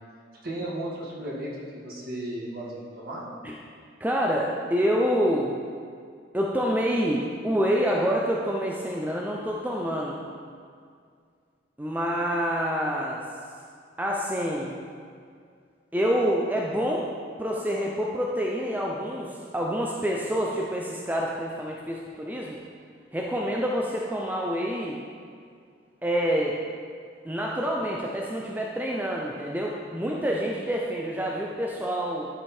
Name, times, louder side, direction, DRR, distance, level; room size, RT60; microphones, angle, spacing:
voice 1, 0.4-3.3, right 1 dB, 55° right, -5 dB, 1.8 m, -35 dB
voice 2, 4.0-5.6 6.3-10.2 11.8-13.2 14.0-14.8 15.9-17.0 17.4-22.6 23.1-25.0 26.0-26.6 27.2-32.3, equal, 10° right, -2 dB, 0.5 m, -27 dB
12.0 x 5.1 x 4.3 m, 2.2 s
head